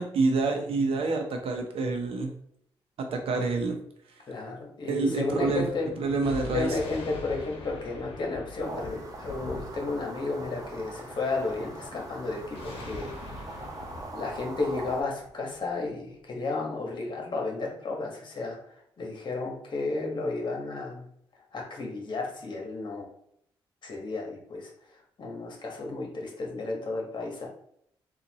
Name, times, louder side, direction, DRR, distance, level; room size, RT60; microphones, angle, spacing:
voice 1, 0.0-2.3 3.0-3.8 4.9-5.6 6.0-6.8, right 3 dB, 80° right, 4 dB, 0.7 m, -27 dB
voice 2, 4.3-6.0 6.5-13.1 14.1-18.6 19.0-21.0 21.5-23.1 23.8-24.7 25.2-27.5, left 3 dB, 50° left, 0 dB, 1.3 m, -33 dB
Thunder, 5.3-16.1, left 2 dB, 70° left, 0.9 m, -43 dB
sound 1, 8.6-15.0, right 2 dB, 35° right, 0.9 m, -42 dB
3.9 x 2.5 x 2.9 m, 0.70 s
cardioid pair, 70°, 10 cm